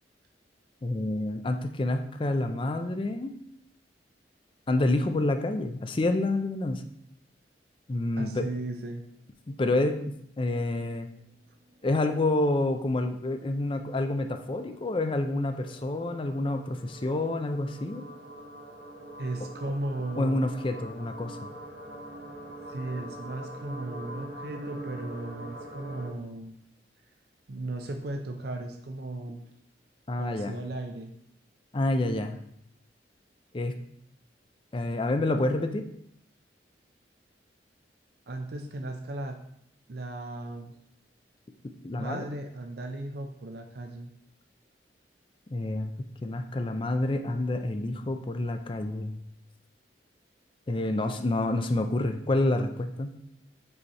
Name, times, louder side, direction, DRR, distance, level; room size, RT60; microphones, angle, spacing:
voice 1, 0.8-3.3 4.7-6.8 7.9-8.4 9.5-11.1 11.8-18.0 20.2-21.5 30.1-30.5 31.7-32.4 33.5-33.7 34.7-35.9 41.8-42.3 45.5-45.9 46.2-49.2 50.7-53.1, left 2 dB, 30° left, 7 dB, 0.4 m, -28 dB
voice 2, 8.2-9.0 19.2-20.4 22.7-26.5 27.5-29.4 30.2-31.1 38.3-39.4 39.9-40.7 42.0-44.1, right 2 dB, 60° right, 3 dB, 0.5 m, -36 dB
sound 1, 11.1-11.4 11.7-11.8 11.9-26.1, right 1 dB, 80° right, 1.3 m, -44 dB
5.6 x 4.5 x 4.1 m, 0.72 s
head